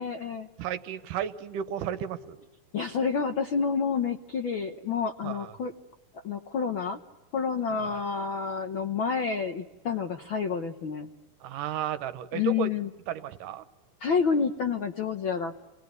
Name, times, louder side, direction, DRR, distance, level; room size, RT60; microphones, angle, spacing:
voice 1, 0.0-0.5 2.7-5.7 6.2-7.0 7.3-11.1 12.3-12.9 14.0-15.5, left 6 dB, 75° left, 6 dB, 1.1 m, -29 dB
voice 2, 0.6-2.4 5.2-5.5 7.7-8.0 11.4-12.7 13.1-13.6, right 9 dB, 80° right, 11 dB, 2.7 m, -33 dB
28.5 x 20.0 x 9.6 m, 1.1 s
omnidirectional pair, 3.8 m